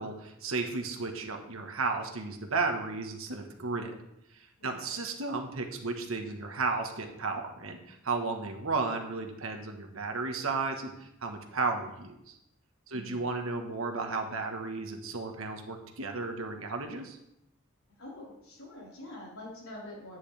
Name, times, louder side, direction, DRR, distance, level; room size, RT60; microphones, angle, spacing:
voice 1, 0.0-3.9 4.3-12.4 12.9-17.2, right 3 dB, 80° right, 4 dB, 1.5 m, -34 dB
voice 2, 4.6-4.9 12.9-13.3 18.0-20.2, left 1 dB, 90° left, -5 dB, 4.6 m, -46 dB
10.5 x 9.4 x 3.5 m, 0.84 s
head